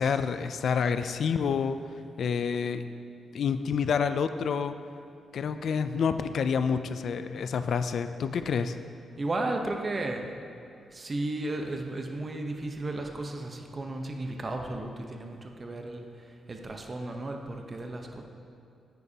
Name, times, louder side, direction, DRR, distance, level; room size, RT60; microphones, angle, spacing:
voice 1, 0.0-1.8 2.2-2.8 3.3-4.7 5.3-8.8, left 6 dB, 65° left, 10 dB, 0.4 m, -28 dB
voice 2, 9.2-10.2 10.9-16.1 16.5-18.2, right 2 dB, 30° right, 3 dB, 0.9 m, -34 dB
9.6 x 9.3 x 2.8 m, 2.6 s
cardioid pair, 105°, 0 cm